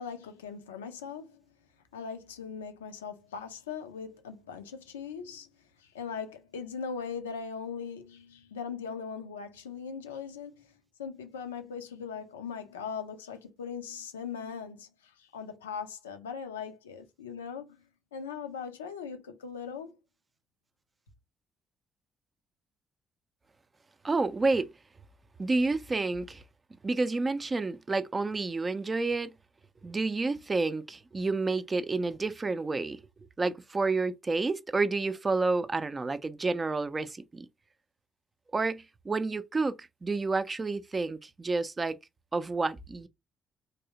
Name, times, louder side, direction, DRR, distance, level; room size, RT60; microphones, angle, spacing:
voice 1, 0.0-1.4 1.9-5.5 5.8-10.7 11.0-17.8 18.1-20.0, left 6 dB, 80° left, 0.4 m, -40 dB
voice 2, 24.0-24.7 25.4-26.4 26.8-29.3 29.8-33.0 33.4-37.5 38.5-42.0 42.3-43.1, right 3 dB, 30° right, 0.4 m, -29 dB
3.2 x 2.7 x 2.8 m
figure-of-eight pair, 45°, 0 cm